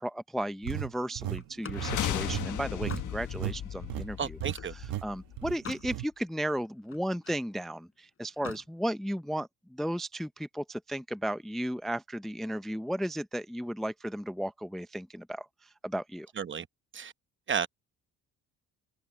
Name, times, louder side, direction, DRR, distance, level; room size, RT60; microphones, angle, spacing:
voice 1, 0.0-4.4 4.7-16.3, equal, ahead, 0.5 m, -35 dB
sound 1, 0.6-3.6 3.8-4.1 4.4-4.6 4.8-5.1 5.4-6.1, right 15 dB, 90° right, 1.4 m, -36 dB
Slam, 1.4-4.8 5.3-6.0 6.3-7.5 8.3-8.7, left 6 dB, 40° left, 4.2 m, -46 dB
sound 2, 1.7-5.7, left 11 dB, 60° left, 1.5 m, -36 dB
voice 2, 4.2-4.7 16.4-16.7 16.9-17.1 17.5-17.7, right 7 dB, 35° right, 0.9 m, -32 dB
cardioid pair, 100°, 34 cm